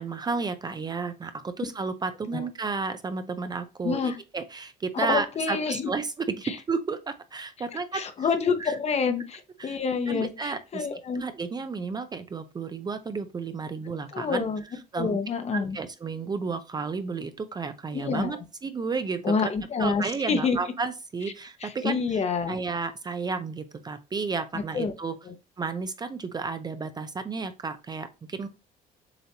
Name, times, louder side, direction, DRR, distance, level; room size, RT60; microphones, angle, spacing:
voice 1, 0.0-8.3 8.6-8.8 9.6-9.8 10.1-10.9 11.2-14.5 14.9-15.2 15.5-19.5 19.8-25.2 25.6-28.5, right 4 dB, 25° right, 10 dB, 0.4 m, -32 dB
voice 2, 3.8-4.2 4.9-5.9 6.4-6.6 7.9-11.2 14.1-14.6 15.0-15.8 17.9-18.4 19.2-20.6 21.6-22.6 24.7-24.9 25.3-25.4, left 5 dB, 40° left, 8 dB, 0.8 m, -27 dB
6.9 x 2.8 x 2.8 m, 0.29 s
cardioid pair, 110°, 17 cm